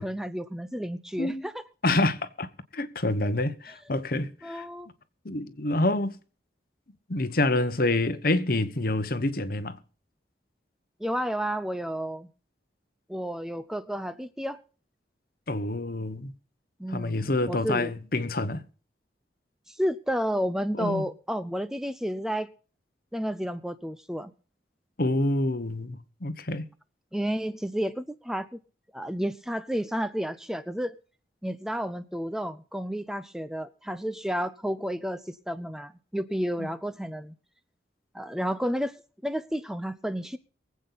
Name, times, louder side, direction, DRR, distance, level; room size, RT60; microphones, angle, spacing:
voice 1, 0.0-1.5 4.4-4.9 11.0-12.3 13.1-14.6 16.8-17.9 19.7-22.5 23.1-24.3 27.1-28.6 28.9-31.0 31.4-37.3 38.1-40.4, equal, 5° right, 0.5 m, -31 dB
voice 2, 1.2-1.5 1.8-2.5 2.7-4.7 5.2-6.2 7.1-9.8 15.5-16.3 16.9-18.6 20.8-21.0 25.0-26.7 36.6-36.7, left 2 dB, 55° left, 1.1 m, -27 dB
23.5 x 8.4 x 4.0 m
head